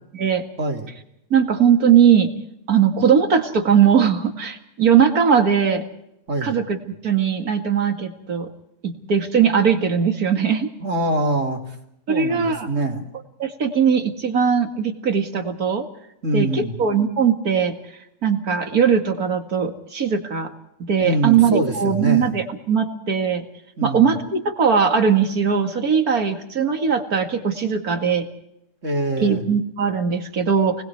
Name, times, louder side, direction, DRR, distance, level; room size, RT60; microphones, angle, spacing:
voice 1, 0.6-0.9 6.3-6.6 10.8-11.7 12.1-13.1 16.2-16.7 21.0-22.4 23.8-24.1 28.8-29.5, right 1 dB, 55° right, 2 dB, 3.2 m, -24 dB
voice 2, 1.3-2.3 2.7-5.8 6.4-6.8 7.0-8.5 8.8-10.7 12.1-12.7 13.4-15.9 16.3-17.8 18.2-20.5 20.8-23.5 23.8-28.3 29.2-30.8, right 7 dB, 85° right, 5 dB, 2.6 m, -19 dB
29.0 x 20.5 x 4.7 m, 0.80 s
omnidirectional pair, 1.5 m